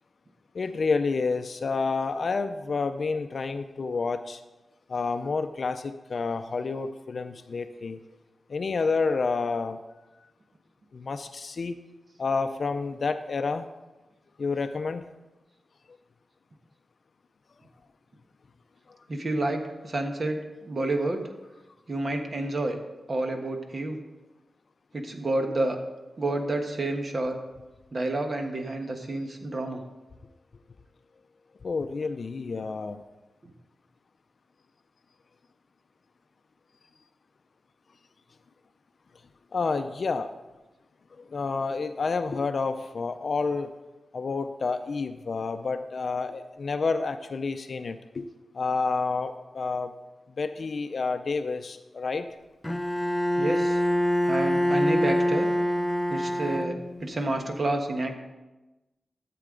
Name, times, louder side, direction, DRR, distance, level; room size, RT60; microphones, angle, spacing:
voice 1, 0.5-4.4 4.9-8.0 8.5-9.8 10.9-11.8 12.2-13.7 14.4-15.0 31.6-33.0 39.5-40.3 41.1-43.7 44.1-48.3 48.5-49.9 50.4-52.3, left 4 dB, 60° left, 9 dB, 0.5 m, -29 dB
voice 2, 19.1-20.4 20.7-21.2 21.9-22.8 23.1-24.0 24.9-25.8 26.2-27.4 27.9-29.8 53.4-53.8 54.3-55.5 56.1-58.1, right 2 dB, 45° right, 4 dB, 1.3 m, -29 dB
Bowed string instrument, 52.6-57.2, equal, 10° left, 0.5 m, -25 dB
13.0 x 7.7 x 3.8 m, 1.1 s
wide cardioid pair, 95°, 0 cm